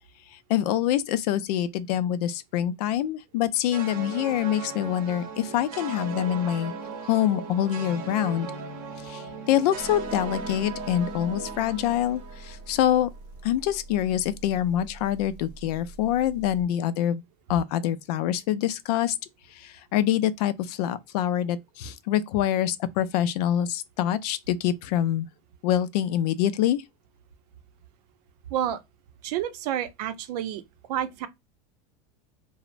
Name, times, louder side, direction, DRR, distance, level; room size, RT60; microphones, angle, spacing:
voice 1, 0.3-6.7 7.0-8.5 9.0-13.1 13.4-17.2 17.5-19.2 19.5-25.3 25.6-26.8, left 11 dB, 90° left, 0.4 m, -25 dB
sound 1, 3.7-13.0, right 5 dB, 45° right, 0.7 m, -37 dB
Motor vehicle (road) / Engine, 9.7-16.7, right 2 dB, 45° left, 0.6 m, -45 dB
voice 2, 29.2-30.6 30.9-31.3, right 10 dB, 85° right, 0.5 m, -29 dB
3.0 x 2.0 x 2.5 m
supercardioid pair, 160°, 20 cm